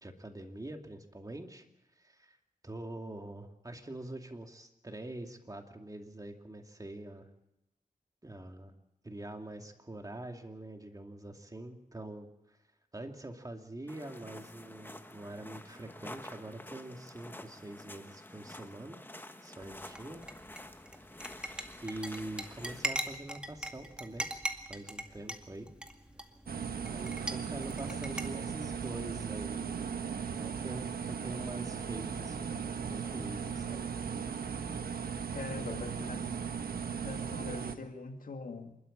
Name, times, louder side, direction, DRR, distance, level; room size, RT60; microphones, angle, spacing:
voice 1, 0.0-1.6 2.0-2.4 2.6-7.3 8.2-8.7 9.0-12.6 12.9-19.0 19.4-20.2 21.8-24.3 24.7-25.7 26.9-29.8 30.3-33.8, right 1 dB, 25° right, 4 dB, 2.4 m, -44 dB
sound 1, 13.9-22.9, left 1 dB, 15° left, 1.3 m, -49 dB
sound 2, 19.6-28.3, right 1 dB, 5° right, 2.1 m, -41 dB
sound 3, 26.5-37.8, right 6 dB, 80° right, 1.4 m, -37 dB
voice 2, 35.3-36.2 37.0-38.8, left 3 dB, 65° left, 5 dB, 2.2 m, -43 dB
27.0 x 12.5 x 8.8 m, 0.91 s
wide cardioid pair, 80°, 15 cm